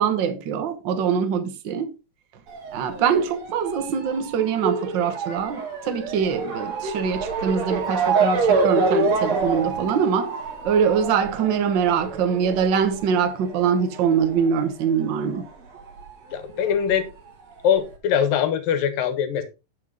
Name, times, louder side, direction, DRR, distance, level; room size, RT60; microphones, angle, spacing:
voice 1, 0.0-1.9 2.7-10.3 10.6-15.4, right 7 dB, 70° right, 1.1 m, -23 dB
Motor vehicle (road) / Siren, 2.5-15.5 15.8-16.9 17.6-17.7 17.9-18.0, right 4 dB, 55° right, 2.9 m, -27 dB
voice 2, 16.3-17.1 17.6-19.4, left 8 dB, 85° left, 3.0 m, -22 dB
9.4 x 7.0 x 3.9 m
omnidirectional pair, 3.9 m